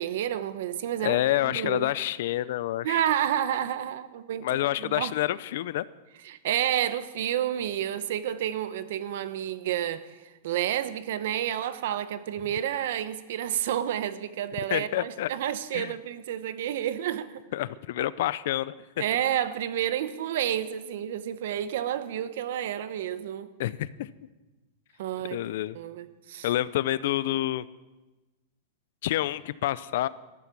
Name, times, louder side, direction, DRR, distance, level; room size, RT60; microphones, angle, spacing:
voice 1, 0.0-1.9 2.8-5.1 6.2-17.4 18.0-18.1 19.0-23.5 25.0-25.4 25.7-26.5, right 11 dB, 65° right, 0.9 m, -30 dB
voice 2, 1.0-3.0 4.4-5.9 14.7-15.3 15.7-15.9 17.5-18.8 23.6-24.1 25.3-25.8 26.4-27.7 29.0-30.1, left 14 dB, 60° left, 0.5 m, -28 dB
13.5 x 13.0 x 6.0 m
supercardioid pair, 160°, 0 cm